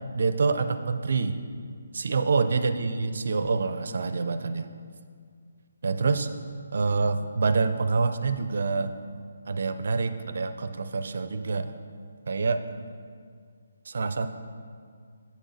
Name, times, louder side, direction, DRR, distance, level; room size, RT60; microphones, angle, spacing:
voice 1, 0.1-1.3 1.9-4.7 5.8-6.3 6.7-8.9 9.5-11.7 12.3-12.6 13.9-14.3, right 4 dB, 60° right, 10 dB, 0.4 m, -26 dB
8.1 x 6.2 x 4.0 m, 2.1 s
hypercardioid pair, 165°, 0 cm